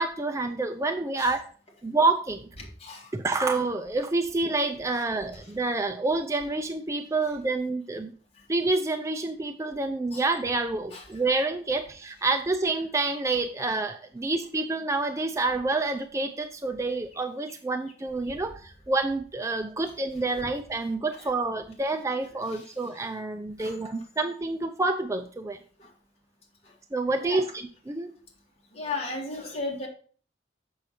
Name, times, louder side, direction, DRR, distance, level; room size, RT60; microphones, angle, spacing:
voice 1, 0.0-1.4 1.8-2.5 3.1-8.1 8.5-25.6 26.9-28.1, right 3 dB, 15° right, 5 dB, 0.4 m, -28 dB
voice 2, 2.8-3.1 10.1-10.2 10.9-11.0 18.3-18.4 21.2-21.3 22.5-22.7 23.6-23.8 25.8-25.9 27.2-27.4 28.7-29.9, left 3 dB, 35° left, -1 dB, 2.1 m, -35 dB
7.3 x 6.5 x 4.3 m, 0.43 s
head